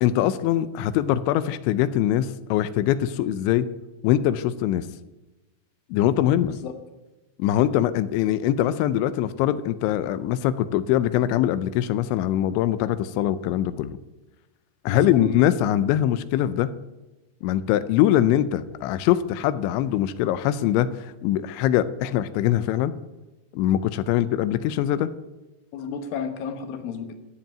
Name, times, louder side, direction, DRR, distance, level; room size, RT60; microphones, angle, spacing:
voice 1, 0.0-3.7 4.0-4.9 5.9-6.5 7.4-14.0 14.9-16.7 17.4-22.9 23.5-25.1, left 12 dB, 85° left, 14 dB, 3.0 m, -22 dB
voice 2, 14.9-15.3 25.7-27.2, left 6 dB, 65° left, 7 dB, 2.5 m, -32 dB
13.5 x 7.4 x 9.0 m, 1.1 s
omnidirectional pair, 5.3 m